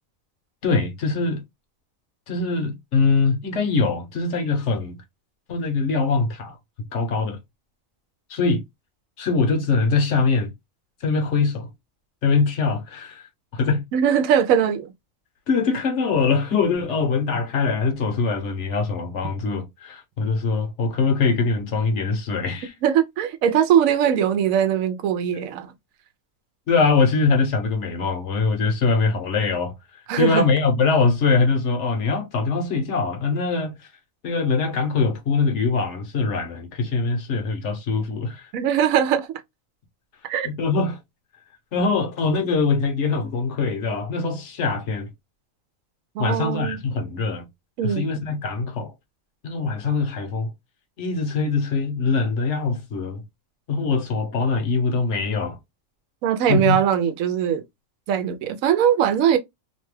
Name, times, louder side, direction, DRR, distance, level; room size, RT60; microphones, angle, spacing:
voice 1, 0.6-1.4 2.3-5.0 5.5-6.6 6.9-7.4 8.3-8.6 9.2-10.5 11.0-11.7 12.2-13.3 13.5-13.8 15.5-22.7 26.7-29.7 30.2-33.7 34.2-38.4 40.4-41.0 41.7-45.1 46.2-47.5 47.8-48.9 49.4-50.5 51.0-53.2 53.7-55.6 56.5-56.8, left 4 dB, 65° left, 1.1 m, -22 dB
voice 2, 13.9-14.9 22.8-25.7 30.1-30.5 38.5-39.4 40.3-40.5 46.2-46.8 47.8-48.0 56.2-57.6 58.1-59.4, right 9 dB, 90° right, 1.0 m, -20 dB
2.8 x 2.2 x 3.1 m
omnidirectional pair, 1.4 m